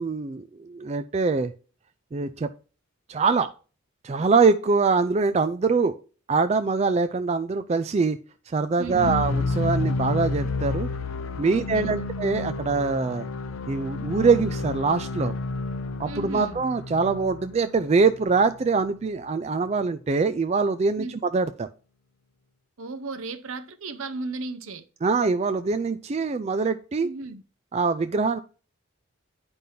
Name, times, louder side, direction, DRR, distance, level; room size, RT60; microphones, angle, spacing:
voice 1, 0.0-1.5 2.1-2.5 3.1-3.5 4.0-6.0 6.3-8.2 8.5-10.9 11.4-13.3 13.7-15.3 16.0-21.1 21.3-21.7 25.0-27.1 27.7-28.4, right 4 dB, 30° right, 0.3 m, -23 dB
sound 1, 8.8-18.9, left 3 dB, 80° left, 0.5 m, -30 dB
voice 2, 8.8-9.2 11.5-12.1 16.1-16.6 21.0-21.2 22.8-24.8 27.0-27.4, right 3 dB, 80° right, 0.8 m, -35 dB
9.3 x 5.3 x 2.7 m
head